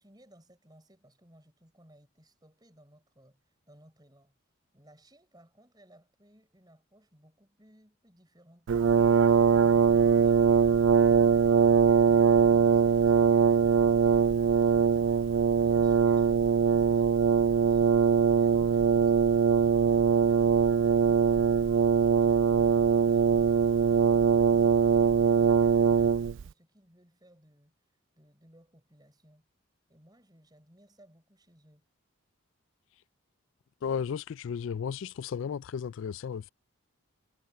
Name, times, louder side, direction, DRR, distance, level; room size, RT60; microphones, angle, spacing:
voice 1, 0.0-4.3 4.7-8.7 11.9-19.2 22.5-23.6 23.9-27.7 28.2-29.5 29.9-31.9, right 1 dB, 20° right, 7.0 m, -60 dB
Brass instrument, 8.7-26.5, right 6 dB, 60° right, 0.3 m, -22 dB
voice 2, 33.8-36.5, left 7 dB, 60° left, 0.3 m, -34 dB
head